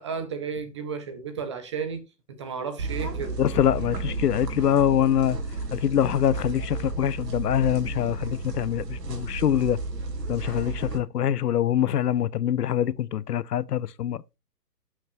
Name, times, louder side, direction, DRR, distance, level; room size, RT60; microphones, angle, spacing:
voice 1, 0.0-3.4, right 6 dB, 20° right, 0.5 m, -33 dB
sound 1, 2.8-11.0, right 3 dB, 80° right, 2.4 m, -32 dB
voice 2, 3.4-5.4 5.7-9.8 10.3-14.2, left 10 dB, 70° left, 0.7 m, -24 dB
12.5 x 6.0 x 2.6 m
hypercardioid pair, 140°, 49 cm